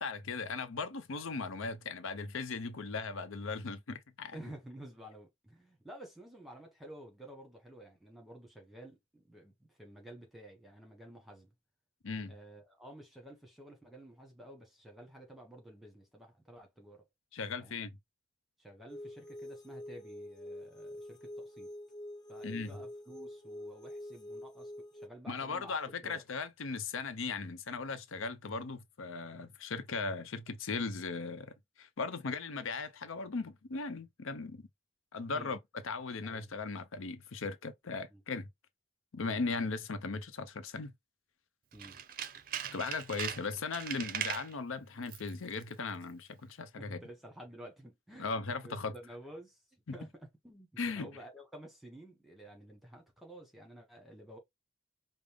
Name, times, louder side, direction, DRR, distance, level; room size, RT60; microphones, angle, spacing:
voice 1, 0.0-4.4 12.0-12.3 17.3-18.0 22.4-22.8 25.3-34.6 35.1-38.5 39.1-40.9 42.7-47.0 48.2-48.9 49.9-50.0 50.8-51.1, left 4 dB, 90° left, 0.6 m, -38 dB
voice 2, 4.3-11.5 12.3-17.1 17.6-17.8 18.6-21.7 22.3-26.2 35.3-35.6 36.2-36.5 38.1-38.2 39.3-39.4 41.7-42.0 46.8-48.3 48.6-54.4, right 1 dB, ahead, 1.2 m, -52 dB
sound 1, 18.9-25.1, left 1 dB, 20° left, 0.4 m, -46 dB
Tools, 41.7-44.5 45.0-45.3 45.6-45.7, right 9 dB, 45° right, 0.5 m, -39 dB
5.2 x 2.0 x 3.4 m
head